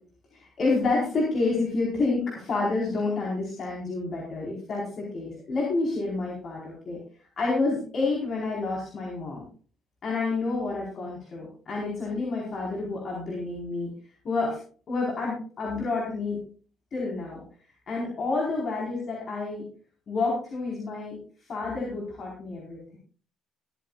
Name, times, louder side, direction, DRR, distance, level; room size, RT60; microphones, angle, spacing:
voice 1, 0.3-7.0 7.4-9.4 10.0-13.9 14.2-14.6 14.9-16.4 16.9-17.4 17.9-19.7 20.1-21.2 21.5-23.0, left 3 dB, 55° left, -4 dB, 4.6 m, -29 dB
24.5 x 9.2 x 2.5 m, 0.41 s
hypercardioid pair, 55°, 0 cm